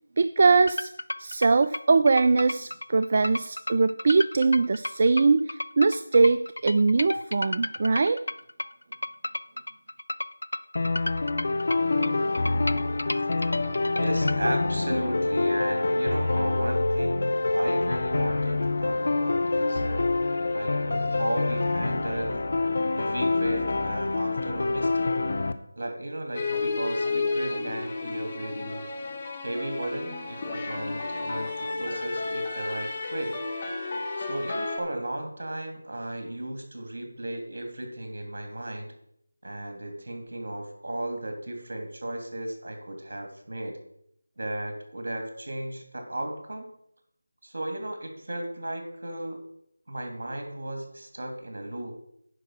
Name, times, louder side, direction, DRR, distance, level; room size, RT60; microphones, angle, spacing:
voice 1, 0.2-0.9 1.2-8.2, right 4 dB, 45° right, 11 dB, 0.3 m, -22 dB
sound 1, 0.7-14.4, left 1 dB, 85° left, 0.5 m, -33 dB
sound 2, 10.8-25.5, left 3 dB, 55° left, 0.8 m, -26 dB
voice 2, 14.0-20.1 20.5-22.5 23.0-25.1 25.8-28.9 29.4-33.4 34.2-38.9 39.4-43.8 44.4-46.7 47.4-49.4 49.9-52.0, right 1 dB, 65° right, 4 dB, 2.7 m, -35 dB
sound 3, 26.3-34.8, left 3 dB, 30° left, 1.6 m, -32 dB
9.8 x 5.8 x 6.2 m, 0.73 s
figure-of-eight pair, 165°, 0 cm